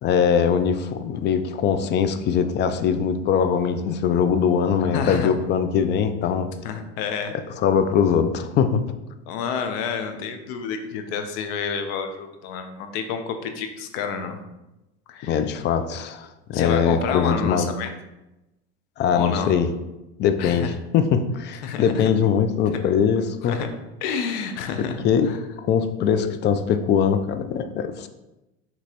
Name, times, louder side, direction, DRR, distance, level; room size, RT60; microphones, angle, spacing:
voice 1, 0.0-6.5 7.6-8.8 15.2-17.7 19.0-19.7 20.2-23.6 24.8-25.3 25.6-28.1, left 7 dB, 35° left, 9 dB, 0.4 m, -22 dB
voice 2, 4.8-5.3 6.6-7.3 9.3-14.4 15.1-15.4 16.5-17.9 19.1-19.5 20.4-20.7 21.6-22.1 23.4-23.7 24.0-25.4, left 6 dB, 75° left, 6 dB, 0.7 m, -29 dB
6.0 x 3.0 x 2.9 m, 0.97 s
supercardioid pair, 115°, 30 cm